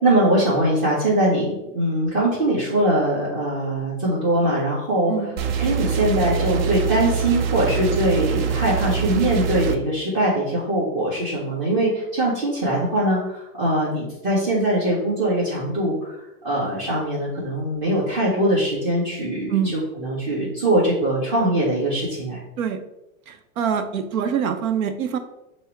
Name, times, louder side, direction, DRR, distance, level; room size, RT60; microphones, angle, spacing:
voice 1, 0.0-16.2 16.4-22.4, right 1 dB, 30° right, -7 dB, 1.3 m, -22 dB
sound 1, 5.4-9.8, right 7 dB, 50° right, 0.5 m, -24 dB
voice 2, 23.3-25.2, right 7 dB, 90° right, 8 dB, 0.7 m, -24 dB
5.5 x 2.1 x 4.5 m, 0.90 s
supercardioid pair, 150°, 41 cm